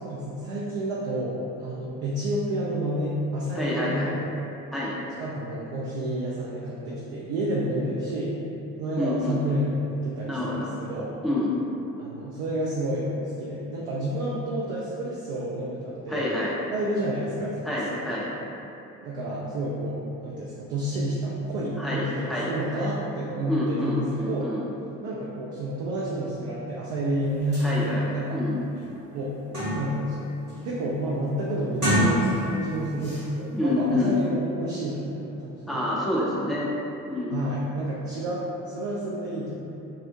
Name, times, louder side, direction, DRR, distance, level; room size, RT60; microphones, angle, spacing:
voice 1, 0.0-4.3 5.2-8.3 8.8-11.1 12.0-13.1 13.4-16.3 16.7-17.8 18.1-18.2 19.0-24.5 25.0-28.4 29.1-29.3 29.7-35.9 36.3-36.6 37.3-39.5, right 1 dB, 55° right, -5 dB, 0.5 m, -30 dB
voice 2, 3.5-4.1 4.7-5.0 9.0-9.4 10.3-10.7 11.2-11.6 16.1-16.6 17.6-18.3 21.8-22.9 23.5-24.6 27.6-28.6 33.5-34.1 35.7-36.7 37.1-37.4, left 1 dB, ahead, -7 dB, 0.6 m, -28 dB
sound 1, 27.2-27.3 27.5-27.7 28.2-28.3 28.7-30.1 30.5-30.8 31.6-32.6 33.0-33.2, equal, 85° right, 1.2 m, -27 dB
3.7 x 2.0 x 2.7 m, 2.8 s
figure-of-eight pair, 50°, 43 cm